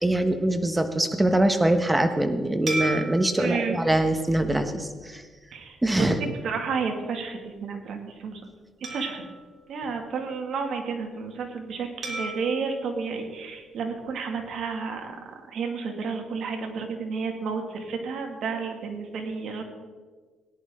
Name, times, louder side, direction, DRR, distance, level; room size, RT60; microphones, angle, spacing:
voice 1, 0.0-5.2 5.8-6.2, right 1 dB, 10° right, 7 dB, 1.3 m, -23 dB
sound 1, 2.7-5.3 5.9-6.1 8.8-10.6 12.0-14.3, right 2 dB, 50° right, 3.9 m, -37 dB
voice 2, 3.4-3.8 5.5-8.4 8.9-9.2 9.7-15.2 15.5-19.6, right 5 dB, 70° right, 3 dB, 2.3 m, -31 dB
18.5 x 11.0 x 3.8 m, 1.4 s
cardioid pair, 90°, 0 cm